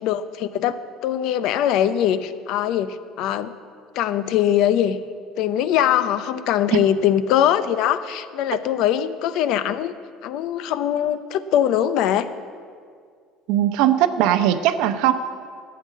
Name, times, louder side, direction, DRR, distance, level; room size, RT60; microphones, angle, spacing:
voice 1, 0.0-0.8 1.0-3.5 3.9-5.0 5.4-9.9 10.2-12.3, left 10 dB, 65° left, 13 dB, 0.7 m, -21 dB
voice 2, 13.5-15.1, right 11 dB, 75° right, 10 dB, 0.8 m, -19 dB
12.5 x 8.6 x 7.4 m, 2.1 s
cardioid pair, 120°, 0 cm